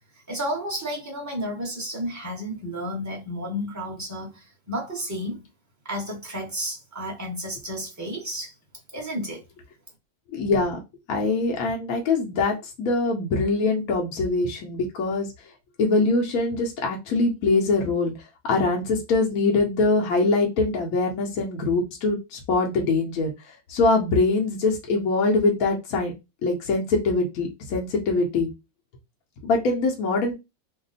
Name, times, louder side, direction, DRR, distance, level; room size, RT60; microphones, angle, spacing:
voice 1, 0.3-5.4 5.8-8.5 8.9-9.4, equal, 15° right, 0.8 m, -32 dB
voice 2, 10.3-10.8 11.1-15.3 15.8-18.1 18.4-23.3 23.7-26.1 26.4-28.5 29.4-30.3, left 3 dB, 70° left, 1.1 m, -23 dB
2.8 x 2.0 x 3.9 m
omnidirectional pair, 1.6 m